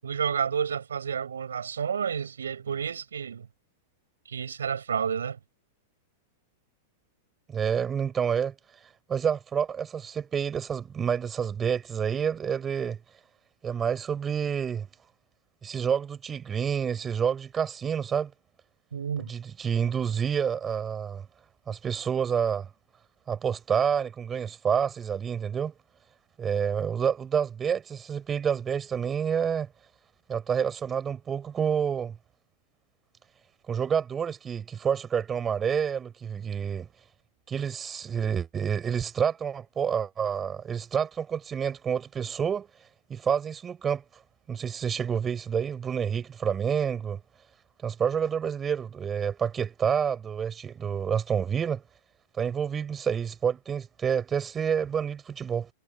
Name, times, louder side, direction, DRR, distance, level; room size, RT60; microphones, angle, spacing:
voice 1, 0.0-3.5 4.3-5.4 18.9-19.3, right 7 dB, 70° right, 7.9 m, -30 dB
voice 2, 7.5-8.5 9.1-13.0 13.6-14.9 15.6-18.3 19.3-21.2 21.7-22.7 23.3-25.7 26.4-29.7 30.3-32.1 33.7-36.9 37.5-42.7 43.1-44.0 44.5-47.2 47.8-51.8 52.4-55.7, right 7 dB, 20° right, 5.6 m, -28 dB
figure-of-eight pair, 95°, 0 cm